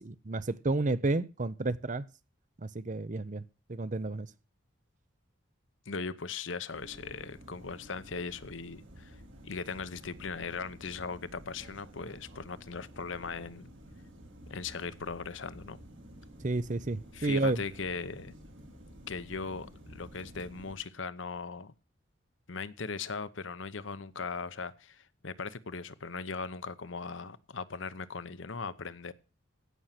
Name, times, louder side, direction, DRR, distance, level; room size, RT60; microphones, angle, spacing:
voice 1, 0.0-2.1 2.6-3.4 3.7-4.3 16.4-17.6, right 2 dB, 40° right, 0.7 m, -31 dB
voice 2, 5.9-9.2 9.4-13.7 14.5-15.8 17.1-18.3 19.1-21.7 22.5-29.1, left 4 dB, 70° left, 0.9 m, -39 dB
sound 1, 6.7-20.8, equal, 70° right, 3.5 m, -51 dB
16.5 x 6.5 x 5.8 m
head